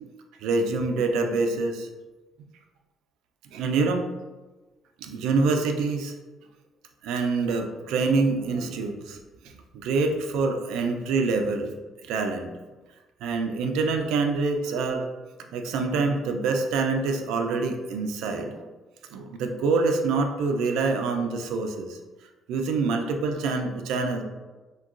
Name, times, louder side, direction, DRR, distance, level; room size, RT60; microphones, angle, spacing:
voice 1, 0.4-1.9 3.5-4.0 5.0-6.1 7.0-9.2 9.4-11.7 12.1-12.5 13.2-15.1 15.5-18.7 19.1-22.0 22.5-24.2, right 4 dB, 90° right, 4 dB, 0.3 m, -26 dB
3.6 x 2.2 x 2.4 m, 1.2 s
cardioid pair, 130°, 0 cm